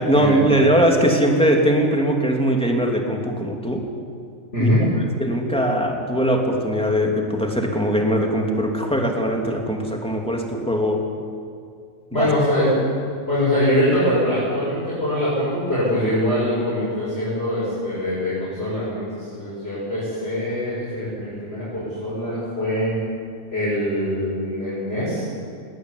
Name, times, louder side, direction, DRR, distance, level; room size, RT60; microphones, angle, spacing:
voice 1, 0.0-3.8 4.6-4.7 5.2-11.0 12.1-12.3, equal, 5° left, 1 dB, 2.9 m, -20 dB
voice 2, 4.5-4.8 12.1-12.8 13.3-23.0 23.5-25.2, equal, 50° left, -10 dB, 7.3 m, -23 dB
19.5 x 19.0 x 10.0 m, 2.4 s
omnidirectional pair, 1.3 m